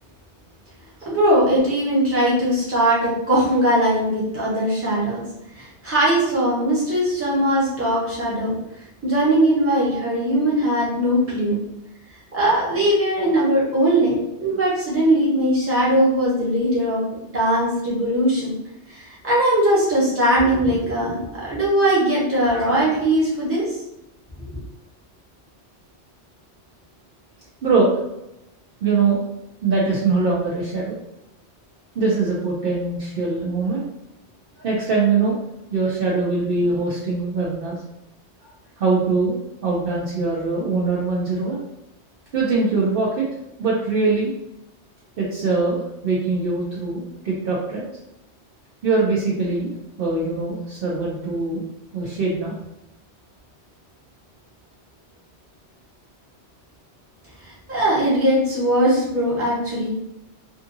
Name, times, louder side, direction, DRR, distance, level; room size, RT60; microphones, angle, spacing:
voice 1, 1.1-5.2 5.5-8.5 9.0-11.6 12.3-18.5 18.9-23.8 24.4-24.5 57.4-59.9, right 1 dB, 15° right, -7 dB, 0.8 m, -20 dB
voice 2, 27.6-27.9 28.8-29.2 29.6-31.0 32.0-33.9 34.6-35.4 35.7-37.8 38.4-38.5 38.8-41.6 42.3-43.3 43.6-44.3 45.2-47.9 48.8-49.7 50.0-51.6 51.9-52.6, right 3 dB, 60° right, -4 dB, 0.7 m, -22 dB
2.6 x 2.5 x 2.5 m, 0.85 s
omnidirectional pair, 1.2 m